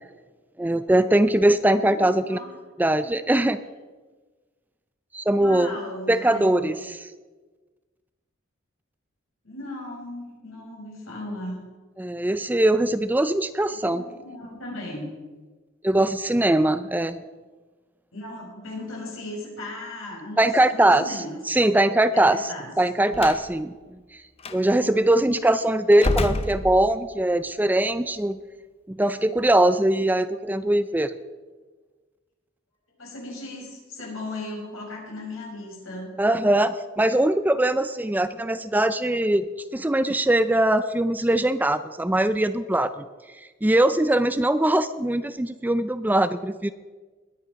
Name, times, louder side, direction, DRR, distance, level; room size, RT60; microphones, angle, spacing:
voice 1, 0.6-2.4 2.8-3.6 5.1-5.8 6.1-7.0 12.0-14.0 15.8-17.2 20.4-24.2 24.5-28.4 28.9-31.1 36.2-39.5 39.7-43.1 43.6-46.7, right 1 dB, 10° right, 12 dB, 0.4 m, -21 dB
voice 2, 1.7-2.5 5.4-6.8 9.4-11.7 13.7-15.1 18.1-21.6 22.1-22.7 33.0-36.1, left 1 dB, 85° left, -2 dB, 6.1 m, -37 dB
Slam, 23.1-23.5 24.4-24.6 25.9-27.2, left 2 dB, 30° left, 0.8 m, -27 dB
20.0 x 9.9 x 5.2 m, 1.3 s
head